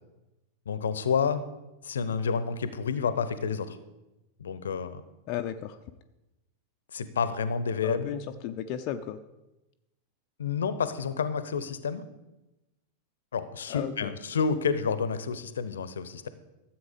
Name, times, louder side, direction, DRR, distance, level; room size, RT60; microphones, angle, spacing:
voice 1, 0.7-1.4 1.8-3.8 4.4-5.0 6.9-8.1 10.4-12.0 13.3-16.3, left 6 dB, 65° left, 13 dB, 0.8 m, -29 dB
voice 2, 5.3-5.8 7.8-9.2 13.7-14.1, left 10 dB, 40° left, 6 dB, 0.6 m, -34 dB
13.5 x 7.7 x 5.1 m, 0.99 s
figure-of-eight pair, 90°, 0 cm